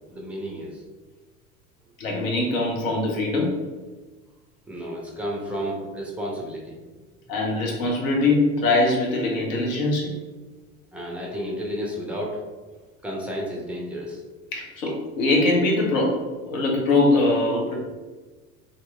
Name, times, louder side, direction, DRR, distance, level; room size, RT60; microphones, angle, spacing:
voice 1, 0.1-0.8 4.7-6.8 10.9-12.4 13.0-14.2, equal, 5° right, -2 dB, 0.4 m, -32 dB
voice 2, 2.0-3.6 7.3-10.2 14.5-17.7, left 2 dB, 65° left, -1 dB, 0.8 m, -22 dB
2.7 x 2.6 x 2.3 m, 1.3 s
figure-of-eight pair, 75°, 43 cm